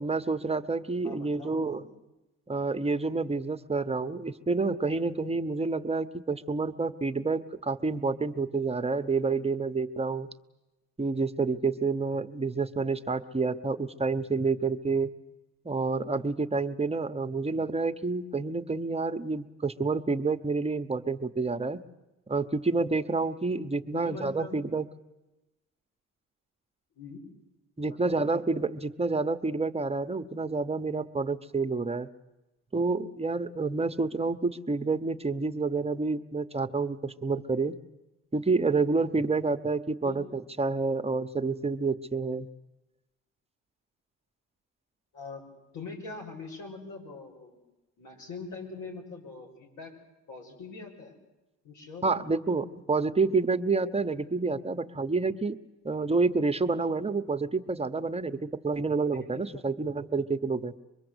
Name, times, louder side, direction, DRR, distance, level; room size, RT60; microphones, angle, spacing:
voice 1, 0.0-1.8 2.5-10.3 11.0-15.1 15.6-21.8 22.3-24.9 27.8-32.1 32.7-37.7 38.3-42.5 52.0-55.6 55.8-60.7, right 3 dB, 20° right, 9 dB, 1.0 m, -28 dB
voice 2, 1.0-1.8 23.9-24.6 26.9-27.2 27.9-28.2 40.0-40.2 45.1-45.4 45.7-47.6 48.0-49.9 50.3-51.1 51.6-52.2 59.1-59.6, left 4 dB, 85° left, 1 dB, 6.3 m, -43 dB
25.0 x 21.5 x 8.0 m, 1.0 s
cardioid pair, 90°, 30 cm